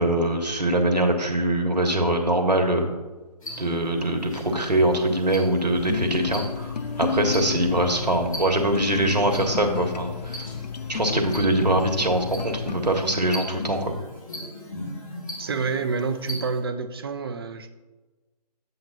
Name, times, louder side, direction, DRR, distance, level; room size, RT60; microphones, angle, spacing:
voice 1, 0.0-2.9 3.6-6.7 7.0-10.4 10.9-13.9, right 1 dB, 75° right, 4 dB, 1.5 m, -23 dB
sound 1, 3.4-16.6, left 1 dB, 55° left, 2.7 m, -40 dB
sound 2, 5.8-13.0, left 6 dB, 75° left, 0.6 m, -32 dB
voice 2, 15.4-17.7, right 4 dB, 35° right, 10 dB, 0.5 m, -28 dB
10.0 x 7.8 x 2.8 m, 1.2 s
figure-of-eight pair, 145°, 21 cm